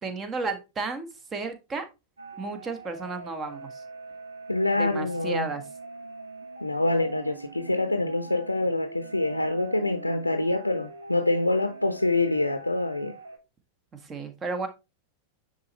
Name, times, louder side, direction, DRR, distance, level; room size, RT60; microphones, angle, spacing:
voice 1, 0.0-1.8 2.4-3.8 4.8-5.6 14.0-14.7, right 3 dB, 20° right, 1.4 m, -33 dB
sound 1, 2.2-13.4, right 3 dB, 70° right, 1.6 m, -43 dB
voice 2, 4.5-5.5 6.6-13.2, left 2 dB, 85° left, 0.6 m, -26 dB
9.3 x 4.2 x 3.1 m
figure-of-eight pair, 90°, 0 cm